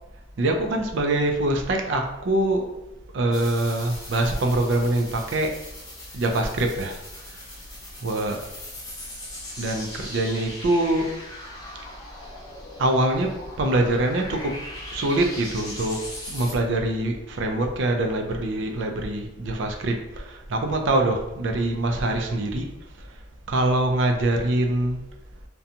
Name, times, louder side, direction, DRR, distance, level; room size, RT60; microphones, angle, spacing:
voice 1, 0.4-2.7 3.1-5.5 6.1-7.0 8.0-8.4 9.6-11.1 12.8-14.6 14.9-16.0 16.3-22.7 23.5-25.0, right 1 dB, 65° right, 4 dB, 0.4 m, -24 dB
sound 1, 3.3-16.5, left 1 dB, 20° left, 0.6 m, -40 dB
2.7 x 2.2 x 2.5 m, 0.89 s
head